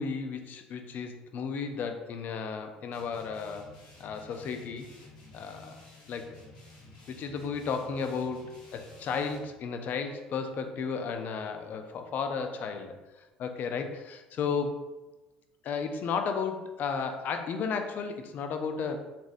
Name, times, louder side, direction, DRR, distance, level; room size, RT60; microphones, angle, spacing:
voice 1, 0.0-3.7 4.0-4.9 5.3-5.8 6.1-6.3 7.1-13.0 13.4-14.8 15.6-19.0, left 5 dB, 50° left, 6 dB, 0.5 m, -33 dB
sound 1, 2.9-9.5, left 2 dB, 85° left, 1.3 m, -52 dB
4.1 x 3.4 x 2.6 m, 1.1 s
hypercardioid pair, 65°, 4 cm